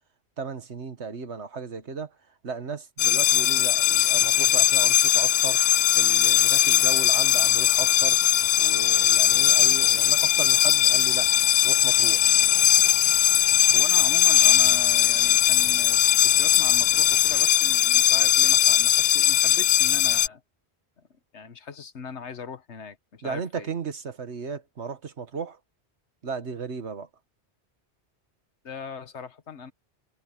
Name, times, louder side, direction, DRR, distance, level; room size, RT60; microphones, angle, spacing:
voice 1, 0.4-2.1 2.4-5.6 5.9-8.3 8.6-11.3 11.6-12.3 23.2-25.6 26.2-27.1, right 5 dB, 85° right, 1.8 m, -35 dB
sound 1, 3.0-20.3, left 12 dB, 70° left, 0.8 m, -20 dB
sound 2, 6.5-17.5, right 1 dB, 15° left, 1.2 m, -46 dB
voice 2, 13.7-20.4 21.0-23.7 28.6-29.7, left 6 dB, 90° left, 1.6 m, -40 dB
omnidirectional pair, 1.1 m